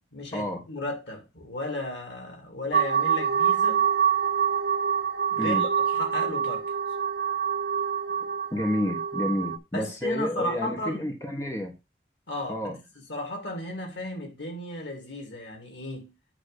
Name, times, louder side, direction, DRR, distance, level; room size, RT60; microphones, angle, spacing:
voice 1, 0.0-3.8 5.3-6.7 9.7-11.1 12.3-16.1, left 1 dB, 90° left, 2.6 m, -35 dB
sound 1, 2.7-9.6, right 8 dB, 70° right, 0.8 m, -26 dB
voice 2, 8.5-11.7 12.5-12.8, left 1 dB, 15° left, 1.4 m, -30 dB
8.9 x 3.2 x 6.6 m
head